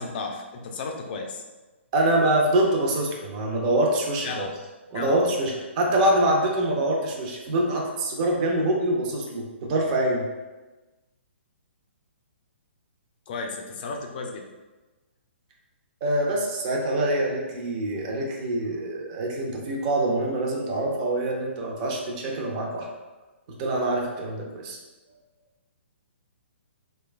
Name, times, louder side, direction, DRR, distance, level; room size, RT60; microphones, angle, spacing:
voice 1, 0.0-1.4 4.2-4.5 4.9-5.2 13.3-14.4, left 4 dB, 45° left, 3 dB, 0.5 m, -34 dB
voice 2, 1.9-4.4 4.9-10.2 16.0-22.9 23.6-24.8, right 1 dB, 35° right, -1 dB, 0.6 m, -25 dB
3.1 x 2.2 x 3.2 m, 1.2 s
hypercardioid pair, 145°, 7 cm